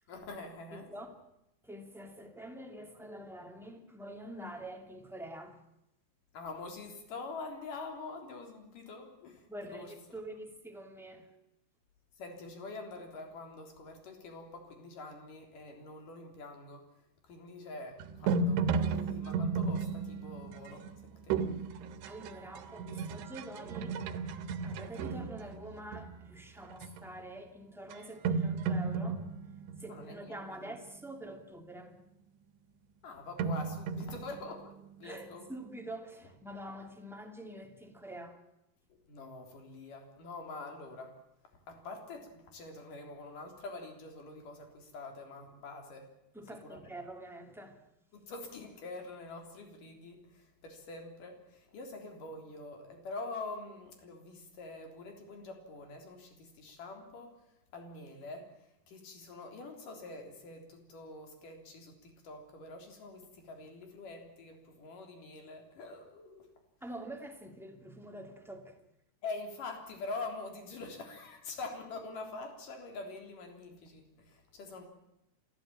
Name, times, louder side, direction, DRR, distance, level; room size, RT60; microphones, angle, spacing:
voice 1, 0.1-0.9 6.3-9.9 12.1-16.8 17.2-21.4 29.8-30.8 33.0-35.5 39.1-41.2 41.7-46.1 46.4-46.9 48.1-57.3 57.7-66.5 69.2-74.9, left 3 dB, 55° left, 4.9 m, -45 dB
voice 2, 0.7-1.2 1.6-5.6 9.5-11.3 22.0-24.0 24.6-29.2 29.8-32.0 35.0-38.4 46.3-47.8 66.8-68.8, right 1 dB, ahead, 1.1 m, -46 dB
sound 1, 18.0-26.2 26.7-27.1 27.9-28.0 28.3-30.8 33.4-35.2, right 4 dB, 85° right, 3.4 m, -34 dB
27.0 x 15.5 x 8.9 m
omnidirectional pair, 4.7 m